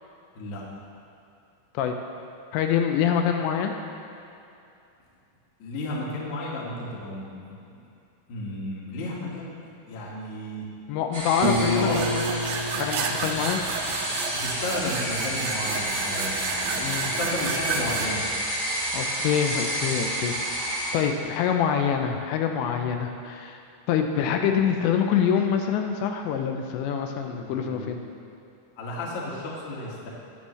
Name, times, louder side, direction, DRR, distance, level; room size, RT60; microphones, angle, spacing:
voice 1, 2.5-3.7 10.9-12.4 12.8-13.6 16.8-17.1 18.9-23.6 23.9-28.0, left 8 dB, 80° left, 4 dB, 2.8 m, -25 dB
voice 2, 5.6-7.8 8.3-10.7 11.8-12.0 14.3-18.2 27.2-28.0 28.8-30.1, left 1 dB, 55° left, -5 dB, 2.5 m, -33 dB
sound 1, 11.1-20.9, right 1 dB, 35° right, 0.9 m, -30 dB
Piano, 11.4-14.3, equal, 60° right, 1.9 m, -29 dB
sound 2, 11.8-18.1, right 6 dB, 80° right, 2.6 m, -32 dB
20.5 x 7.2 x 3.2 m, 2.6 s
omnidirectional pair, 5.4 m